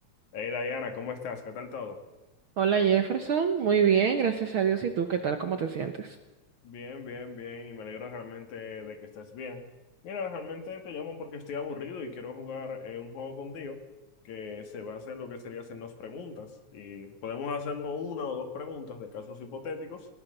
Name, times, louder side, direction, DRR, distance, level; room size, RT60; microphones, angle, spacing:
voice 1, 0.3-2.0 6.6-9.6 10.0-13.8 14.3-20.1, left 5 dB, 85° left, 6 dB, 3.5 m, -38 dB
voice 2, 2.6-6.1, right 7 dB, 55° right, 7 dB, 1.7 m, -25 dB
20.5 x 19.5 x 6.8 m, 1.0 s
omnidirectional pair, 3.3 m